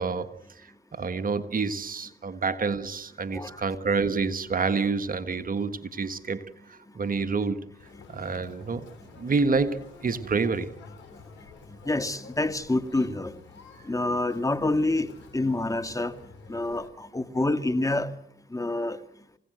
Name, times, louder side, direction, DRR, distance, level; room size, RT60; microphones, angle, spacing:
voice 1, 0.0-6.4 6.7-7.7 8.1-8.9 9.2-10.7, right 4 dB, 50° right, 1.5 m, -28 dB
voice 2, 3.3-3.7 11.9-13.3 13.9-15.1 15.3-16.1 16.5-18.1 18.5-19.0, left 2 dB, 20° left, 2.1 m, -27 dB
Conversation, 7.8-16.9, left 5 dB, 80° left, 3.4 m, -49 dB
29.0 x 16.5 x 7.9 m
supercardioid pair, 45°, 18 cm